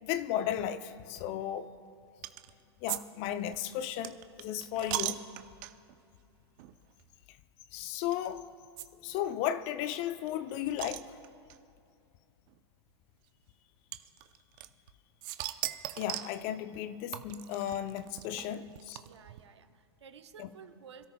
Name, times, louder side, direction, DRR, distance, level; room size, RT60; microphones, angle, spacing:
voice 1, 0.0-1.7 2.8-5.2 7.7-8.4 9.0-11.1 16.0-19.0 20.4-20.5, left 11 dB, 40° left, 0.7 m, -35 dB
sound 1, 2.2-2.5 2.9-6.0 6.6-6.7 7.0-7.1 8.1-8.3 8.8-8.9 9.1-9.2 9.4-9.5 9.9-11.6 12.5-12.6 13.9-14.9 15.2-16.4 17.1-19.4, right 16 dB, 50° right, 0.7 m, -38 dB
voice 2, 18.3-18.7 19.0-21.1, right 7 dB, 80° right, 1.0 m, -53 dB
27.0 x 13.5 x 2.3 m
hypercardioid pair, 115°, 14 cm